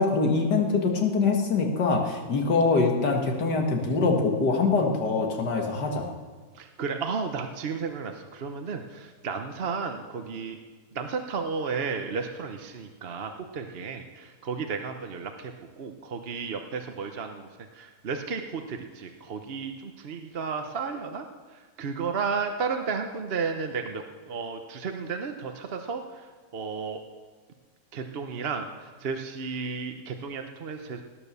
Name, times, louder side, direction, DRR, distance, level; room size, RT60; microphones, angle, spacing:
voice 1, 0.0-6.1, left 4 dB, 85° left, 3 dB, 2.3 m, -24 dB
voice 2, 6.5-10.6 10.9-17.5 17.7-27.0 27.9-31.0, right 5 dB, 45° right, 5 dB, 0.9 m, -33 dB
18.0 x 9.2 x 6.8 m, 1.5 s
omnidirectional pair, 1.8 m